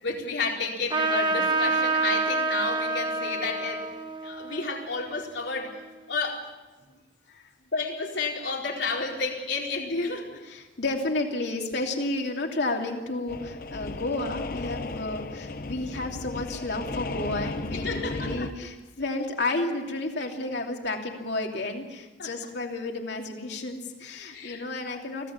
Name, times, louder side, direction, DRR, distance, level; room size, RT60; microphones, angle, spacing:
voice 1, 0.0-3.9 4.2-6.5 7.7-10.4 17.8-18.5 22.2-22.3 24.3-25.0, left 3 dB, 85° left, -1 dB, 4.4 m, -31 dB
Trumpet, 0.9-5.9, right 3 dB, 25° right, 1.3 m, -28 dB
voice 2, 10.5-25.3, left 2 dB, 70° left, 2 dB, 2.9 m, -31 dB
sound 1, 13.3-18.5, left 3 dB, 50° left, 0.9 m, -35 dB
24.5 x 16.5 x 7.3 m, 1.2 s
head